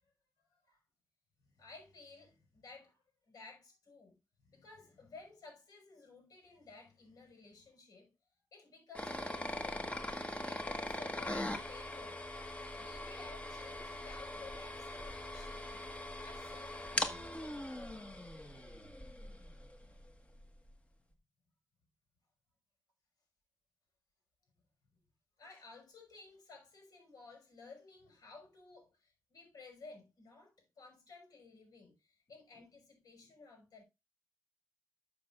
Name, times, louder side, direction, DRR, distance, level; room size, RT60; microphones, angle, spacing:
voice 1, 0.5-0.8 1.6-4.2 4.5-8.1 8.5-9.9 10.4-12.2 12.8-15.9 16.2-17.3 25.4-33.8, left 4 dB, 75° left, 5.7 m, -55 dB
sound 1, 8.9-19.8, left 1 dB, 20° left, 1.6 m, -41 dB
12.0 x 6.7 x 2.5 m
cardioid pair, 95°, 7 cm